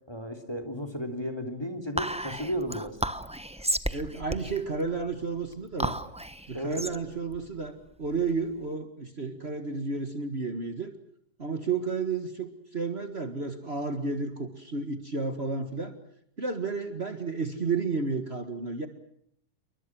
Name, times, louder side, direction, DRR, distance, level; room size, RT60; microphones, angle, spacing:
voice 1, 0.1-3.0 6.5-6.8, equal, 15° left, 7 dB, 3.5 m, -34 dB
Whispering, 2.0-8.6, right 1 dB, 5° right, 0.8 m, -34 dB
voice 2, 3.9-6.0 6.5-10.9 11.4-15.9 16.4-18.9, right 4 dB, 35° right, 7 dB, 2.1 m, -32 dB
29.0 x 24.0 x 6.2 m, 0.70 s
omnidirectional pair, 1.8 m